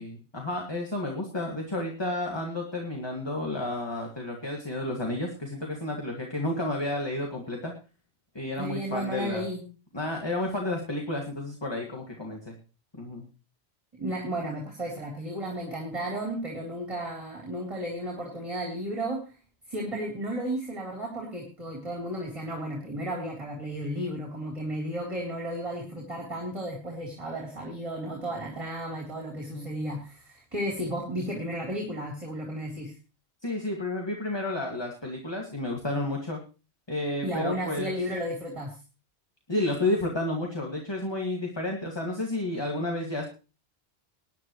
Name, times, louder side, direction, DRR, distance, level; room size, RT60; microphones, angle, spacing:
voice 1, 0.0-7.7 8.3-9.4 9.9-12.5 12.9-13.3 29.5-29.7 33.4-36.4 36.9-37.9 39.5-43.3, left 2 dB, 25° left, 0 dB, 2.3 m, -31 dB
voice 2, 8.6-9.6 14.0-19.4 19.7-33.0 37.2-38.8, right 1 dB, 30° right, -1 dB, 3.6 m, -33 dB
21.0 x 10.5 x 3.1 m, 0.33 s
omnidirectional pair, 1.1 m